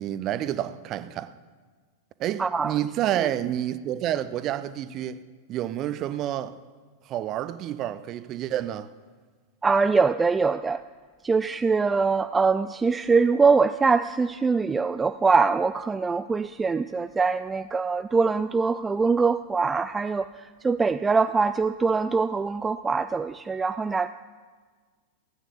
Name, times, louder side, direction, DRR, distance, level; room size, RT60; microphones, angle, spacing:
voice 1, 0.0-1.3 2.2-5.2 5.5-6.6 7.0-8.9, right 12 dB, 35° right, 0.9 m, -29 dB
voice 2, 2.4-2.7 3.2-3.3 9.6-10.8 11.2-24.1, right 4 dB, 15° right, 0.4 m, -23 dB
16.0 x 9.3 x 8.4 m
figure-of-eight pair, 90°, 0 cm